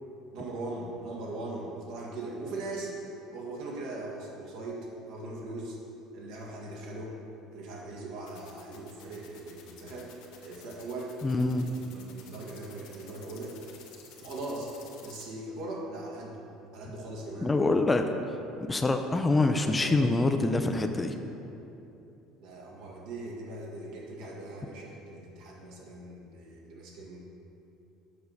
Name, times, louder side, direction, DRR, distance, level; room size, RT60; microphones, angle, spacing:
voice 1, 0.3-2.9 3.3-5.8 6.1-7.1 7.5-10.1 10.4-11.4 11.8-13.5 14.2-14.7 15.0-16.4 16.7-17.6 19.7-20.0 22.4-27.2, right 2 dB, 70° right, -3 dB, 1.9 m, -40 dB
sound 1, 8.3-15.2, left 8 dB, 80° left, 1.3 m, -52 dB
voice 2, 11.2-11.7 17.4-18.1 18.7-21.1, left 2 dB, 15° left, 6 dB, 0.4 m, -25 dB
7.1 x 5.6 x 6.5 m, 2.9 s
cardioid pair, 120°, 0 cm